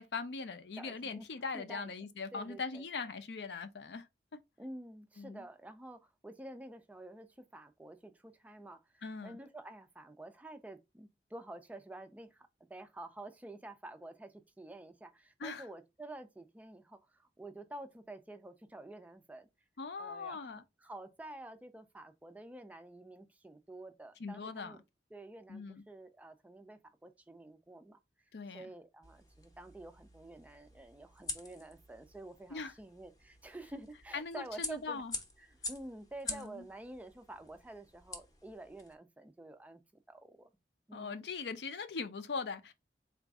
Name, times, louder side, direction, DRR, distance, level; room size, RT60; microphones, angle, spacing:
voice 1, 0.0-4.1 5.2-5.4 9.0-9.4 15.4-15.6 19.8-20.6 24.2-24.8 25.5-25.8 28.3-28.6 32.5-32.7 34.1-35.1 36.3-36.6 40.9-42.7, left 4 dB, 70° left, 0.5 m, -41 dB
voice 2, 0.8-1.2 1.5-2.8 4.6-19.5 20.0-24.8 25.1-28.0 28.5-35.0 35.4-40.5 40.9-41.2, right 2 dB, 10° right, 0.3 m, -49 dB
sound 1, 29.0-38.9, left 3 dB, 20° left, 0.7 m, -47 dB
3.9 x 2.5 x 3.4 m
head